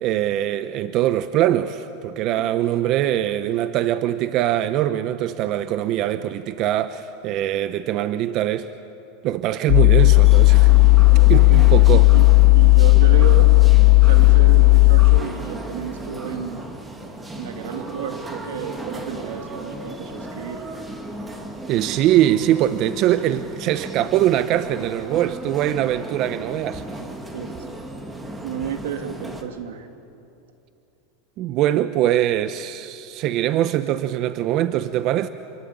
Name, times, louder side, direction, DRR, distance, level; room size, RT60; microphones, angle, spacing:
voice 1, 0.0-8.7 9.2-10.7 11.3-11.4 11.7-12.1 21.7-26.8 31.4-35.3, right 12 dB, 45° right, 0.9 m, -22 dB
sound 1, 9.7-15.2, left 33 dB, 55° left, 0.6 m, -12 dB
sound 2, 10.0-29.4, right 2 dB, 10° right, 2.7 m, -35 dB
voice 2, 11.3-12.3 12.5-13.5 14.0-16.7 17.4-20.6 21.9-22.0 27.3-27.5 28.4-29.9, right 8 dB, 85° right, 2.8 m, -32 dB
28.0 x 23.5 x 8.8 m
supercardioid pair, 135°, 0 cm